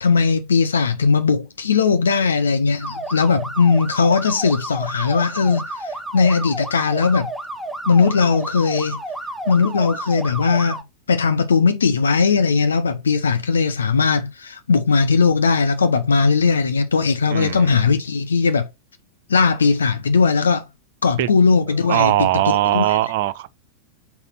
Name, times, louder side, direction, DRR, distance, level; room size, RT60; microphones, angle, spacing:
voice 1, 0.0-7.3 7.9-9.0 9.5-10.8 11.1-18.7 19.3-20.6 21.0-23.0, left 5 dB, 70° left, 0.7 m, -18 dB
sound 1, 2.8-10.8, right 1 dB, 5° right, 0.8 m, -31 dB
voice 2, 17.3-17.9 21.2-21.3 21.9-23.5, right 15 dB, 50° right, 0.5 m, -20 dB
4.2 x 4.1 x 5.6 m
figure-of-eight pair, 90°, 0 cm